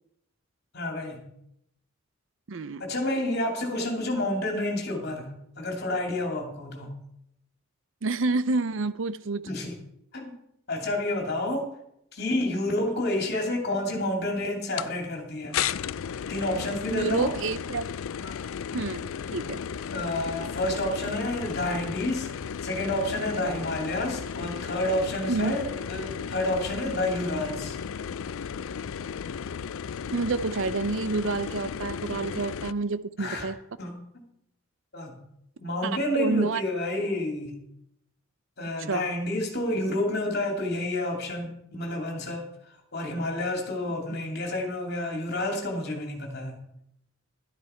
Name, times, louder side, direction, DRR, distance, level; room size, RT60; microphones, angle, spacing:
voice 1, 0.7-1.3 2.8-6.9 9.5-9.7 10.1-10.4 10.7-11.7 12.1-15.6 16.3-17.3 18.2-18.6 19.4-19.5 19.9-22.3 22.6-27.8 33.2-33.5 33.8-34.2 34.9-35.2 35.6-37.6 38.6-42.5 42.9-46.6, left 1 dB, 50° left, 2.7 m, -29 dB
voice 2, 2.5-2.8 8.0-9.4 16.9-17.9 18.7-19.6 25.3-25.6 30.1-33.5 35.8-36.6 38.9-39.1, right 3 dB, 65° right, 0.6 m, -28 dB
sound 1, 14.8-14.9 15.5-32.7, left 7 dB, 75° left, 0.4 m, -34 dB
12.0 x 10.5 x 4.4 m
head